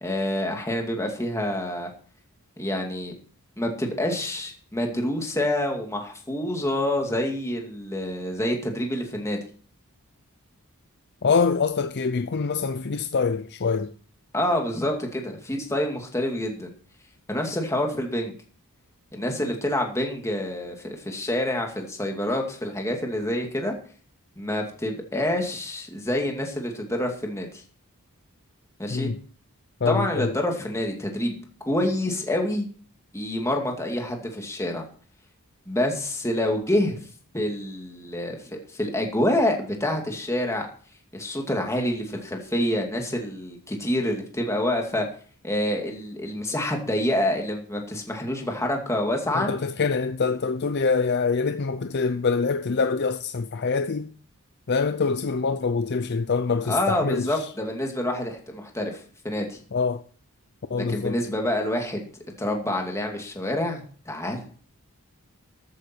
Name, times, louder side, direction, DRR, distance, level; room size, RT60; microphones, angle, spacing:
voice 1, 0.0-1.9 2.6-3.1 3.6-9.4 14.3-16.7 17.3-18.3 19.1-23.8 24.4-27.6 28.8-29.1 29.9-31.4 31.7-32.7 33.1-34.8 35.7-37.0 37.3-40.7 41.1-45.1 45.4-49.5 56.7-59.6 60.9-62.1 62.4-64.4, left 1 dB, 15° left, 2.3 m, -27 dB
voice 2, 11.2-13.9 28.9-29.2 29.8-30.4 49.3-54.1 54.7-57.5 59.7-60.0 60.7-61.2, left 4 dB, 50° left, 0.6 m, -25 dB
13.5 x 9.7 x 4.5 m
head